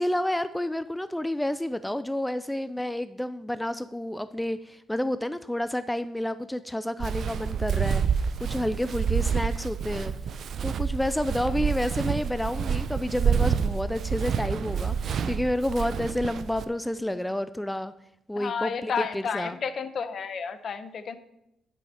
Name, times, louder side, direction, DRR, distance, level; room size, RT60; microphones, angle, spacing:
voice 1, 0.0-10.1 10.6-17.9 18.3-19.6, left 1 dB, 5° left, 13 dB, 0.3 m, -30 dB
Walk footsteps, 7.0-16.6, right 7 dB, 60° right, 0.5 m, -28 dB
voice 2, 18.3-21.2, left 6 dB, 55° left, 11 dB, 0.8 m, -31 dB
8.2 x 5.5 x 5.5 m, 0.84 s
cardioid pair, 90°, 0 cm